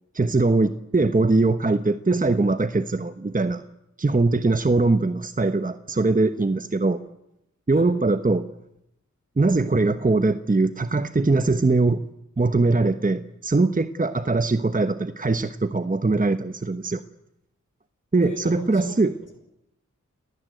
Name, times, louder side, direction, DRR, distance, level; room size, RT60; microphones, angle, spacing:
voice 1, 0.1-3.6 4.0-7.0 7.7-8.5 9.4-12.0 12.4-17.0 18.1-19.1, right 3 dB, 25° right, 10 dB, 1.1 m, -21 dB
voice 2, 18.2-19.4, left 3 dB, 90° left, 7 dB, 5.2 m, -40 dB
30.0 x 19.5 x 7.9 m, 0.83 s
wide cardioid pair, 65°, 30 cm